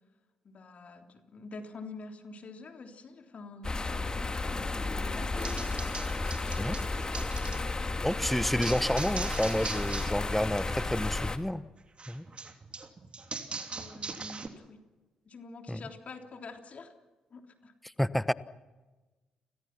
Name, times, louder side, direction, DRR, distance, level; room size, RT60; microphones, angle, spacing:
voice 1, 0.4-6.5 7.4-8.1 13.7-14.8 15.3-16.9 17.3-17.7, left 3 dB, 45° left, 4 dB, 3.4 m, -47 dB
sound 1, 3.6-11.4, left 3 dB, 25° left, 2.3 m, -33 dB
sound 2, 5.4-7.6 8.6-10.2 10.5-10.9 12.0-14.5, right 4 dB, 35° right, 3.1 m, -40 dB
voice 2, 8.0-11.6 12.1-12.2 15.7-15.8 18.0-18.3, equal, 5° left, 16 dB, 1.2 m, -30 dB
30.0 x 21.0 x 6.0 m, 1.2 s
figure-of-eight pair, 45°, 3 cm